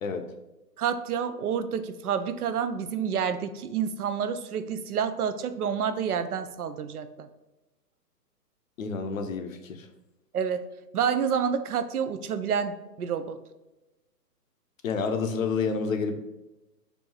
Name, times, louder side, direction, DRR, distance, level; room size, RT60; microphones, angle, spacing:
voice 1, 0.8-7.3 10.3-10.7 10.9-13.4, right 7 dB, 65° right, 10 dB, 0.5 m, -29 dB
voice 2, 8.8-9.9 14.8-16.2, left 5 dB, 55° left, 7 dB, 0.6 m, -29 dB
4.4 x 2.7 x 4.5 m, 1.0 s
hypercardioid pair, 145°, 49 cm